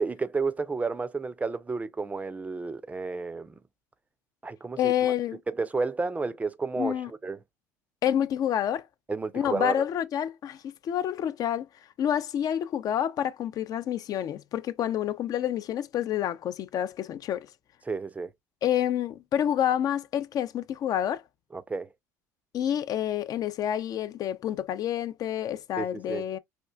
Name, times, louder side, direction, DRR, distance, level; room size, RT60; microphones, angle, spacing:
voice 1, 0.0-3.5 4.4-5.1 5.5-7.4 9.1-9.8 17.9-18.3 21.5-21.9 25.8-26.2, right 4 dB, 15° right, 0.4 m, -31 dB
voice 2, 4.8-5.4 6.8-7.1 8.0-8.9 9.3-11.7 12.0-17.5 18.6-21.2 22.5-26.4, left 10 dB, 45° left, 0.4 m, -28 dB
4.3 x 2.3 x 2.3 m
hypercardioid pair, 70°, 9 cm